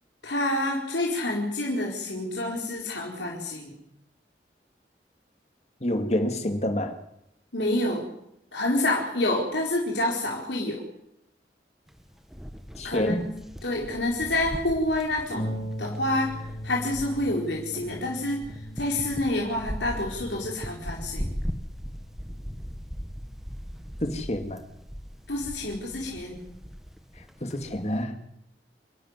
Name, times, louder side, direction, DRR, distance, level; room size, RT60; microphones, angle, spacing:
voice 1, 0.2-3.7 7.5-8.0 8.5-10.8 12.8-13.3 13.6-15.5 15.8-16.3 16.6-18.4 18.8-21.3 25.3-26.4, left 1 dB, 90° left, 4.7 m, -28 dB
voice 2, 5.8-7.0 12.8-13.2 24.0-24.6 27.4-28.2, left 1 dB, 40° left, 2.2 m, -28 dB
sound 1, 11.9-28.0, equal, ahead, 1.5 m, -39 dB
Harp, 15.3-24.5 25.4-25.5 25.9-26.0, equal, 60° left, 5.8 m, -40 dB
29.0 x 12.0 x 9.9 m
head